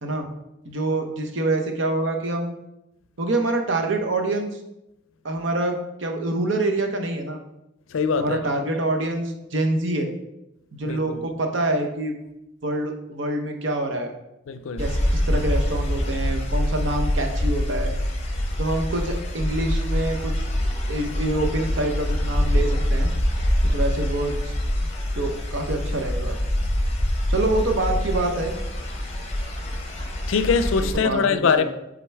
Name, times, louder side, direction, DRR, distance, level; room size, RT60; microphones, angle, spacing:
voice 1, 0.6-2.5 3.2-4.6 5.2-7.4 8.1-10.1 10.7-12.1 12.6-14.1 14.8-17.9 18.6-20.4 20.9-23.1 23.6-24.5 25.1-26.4 27.3-28.6 31.0-31.6, right 2 dB, 65° right, 0.8 m, -26 dB
voice 2, 7.9-8.4 10.8-11.2 14.5-14.8 30.3-31.6, left 5 dB, 80° left, 0.4 m, -22 dB
sound 1, 14.8-30.9, equal, 30° left, 0.9 m, -25 dB
7.7 x 3.8 x 3.4 m
head